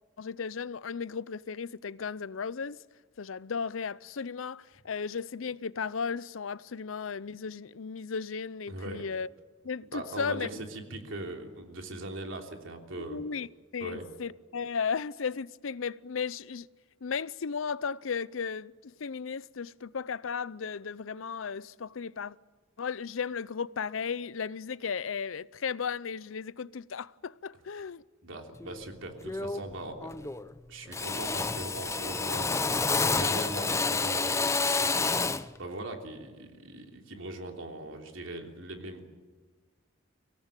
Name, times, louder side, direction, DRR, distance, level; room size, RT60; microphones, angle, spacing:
voice 1, 0.2-2.8 3.2-9.3 9.6-10.5 13.0-13.5 13.7-16.7 17.0-22.4 22.8-28.0, left 6 dB, 85° left, 0.6 m, -35 dB
voice 2, 8.7-9.1 9.9-13.2 13.8-14.0 28.2-30.1 30.7-39.1, right 1 dB, 75° right, 3.3 m, -40 dB
Drill, 28.6-28.8 29.2-29.7 30.0-30.6 30.9-35.5, left 4 dB, 15° left, 0.6 m, -29 dB
24.5 x 17.5 x 9.0 m
head